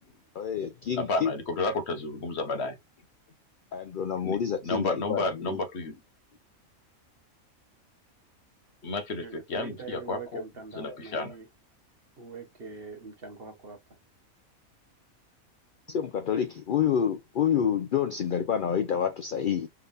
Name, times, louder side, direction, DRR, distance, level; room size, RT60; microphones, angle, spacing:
voice 1, 0.3-1.3 3.7-5.6 15.9-19.7, left 8 dB, 75° left, 0.4 m, -28 dB
voice 2, 1.0-2.8 4.2-4.4 4.6-6.0 8.8-10.4 10.7-11.4, left 2 dB, 55° left, 1.0 m, -31 dB
voice 3, 9.2-11.5 12.2-13.8, right 4 dB, 45° right, 1.1 m, -43 dB
3.5 x 3.4 x 2.6 m
omnidirectional pair, 1.5 m